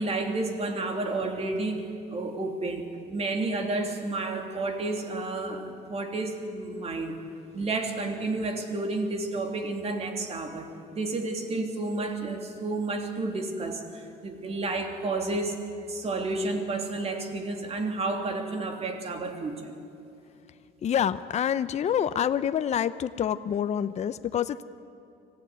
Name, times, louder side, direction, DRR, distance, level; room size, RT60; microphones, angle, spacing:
voice 1, 0.0-7.1 7.5-15.6 15.9-19.7, right 2 dB, 35° right, 4 dB, 3.1 m, -31 dB
voice 2, 20.8-24.6, left 9 dB, 40° left, 12 dB, 0.6 m, -27 dB
25.0 x 15.5 x 9.4 m, 2.7 s
cardioid pair, 110°, 17 cm